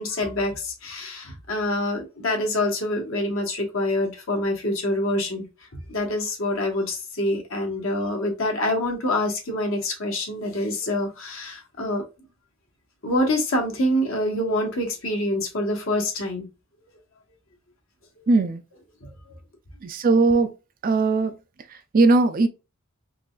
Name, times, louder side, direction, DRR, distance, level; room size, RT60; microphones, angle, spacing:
voice 1, 0.0-5.5 5.9-12.0 13.0-16.5 19.0-19.3, left 1 dB, 60° left, 1.1 m, -26 dB
voice 2, 18.3-18.6 19.8-20.5 20.8-21.4 21.7-22.5, right 3 dB, 40° right, 0.4 m, -19 dB
3.7 x 3.1 x 2.3 m
head